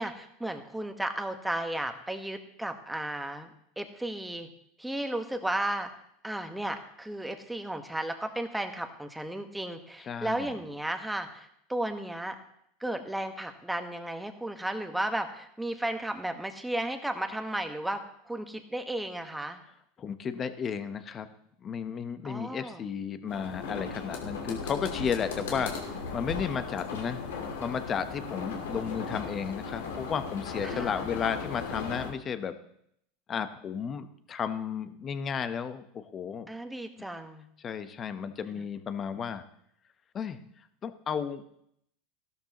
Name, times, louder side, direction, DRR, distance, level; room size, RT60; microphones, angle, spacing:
voice 1, 0.0-3.5 3.8-4.5 4.8-5.9 6.2-12.3 12.8-19.6 22.2-22.8 30.6-31.0 36.5-37.4 38.5-38.6, right 1 dB, 5° right, 6 dB, 1.4 m, -34 dB
voice 2, 10.1-10.5 20.0-21.3 21.6-25.7 26.1-27.2 27.6-32.6 33.3-36.5 37.6-39.4 40.1-40.4 40.8-41.4, left 7 dB, 35° left, 10 dB, 1.1 m, -33 dB
sound 1, 23.3-32.1, left 4 dB, 85° left, 2.7 m, -37 dB
15.0 x 12.5 x 3.1 m, 0.72 s
hypercardioid pair, 105°, 0 cm